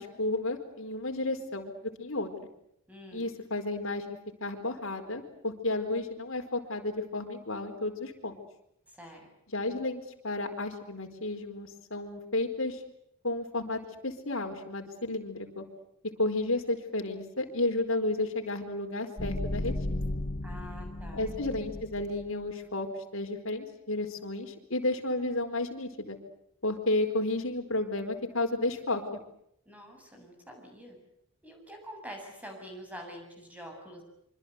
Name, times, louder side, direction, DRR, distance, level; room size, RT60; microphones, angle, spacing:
voice 1, 0.0-2.3 3.1-4.0 4.4-8.4 9.5-12.8 13.2-15.6 16.2-20.1 21.1-22.9 23.1-26.2 26.6-29.0, left 2 dB, 60° left, 4 dB, 4.5 m, -32 dB
voice 2, 2.9-3.3 8.9-9.3 20.4-21.3 29.7-31.0 31.4-34.0, equal, 5° right, 3 dB, 7.5 m, -46 dB
sound 1, 19.2-22.3, left 1 dB, 35° left, 1.0 m, -35 dB
26.0 x 25.5 x 8.2 m, 0.75 s
head